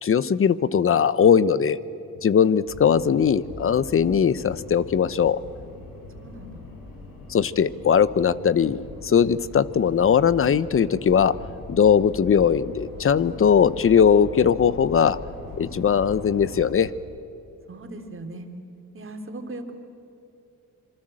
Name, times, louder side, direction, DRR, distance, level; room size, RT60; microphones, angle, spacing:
voice 1, 0.0-1.8 2.2-5.4 7.3-11.4 11.7-15.2 15.6-16.9, left 7 dB, 40° left, 17 dB, 0.9 m, -20 dB
sound 1, 2.7-16.7, left 2 dB, 80° left, 6.9 m, -41 dB
voice 2, 6.2-6.6 17.7-18.5 18.9-19.7, right 2 dB, 40° right, 5 dB, 3.3 m, -38 dB
26.5 x 24.5 x 7.7 m, 2.9 s
cardioid pair, 100°, 33 cm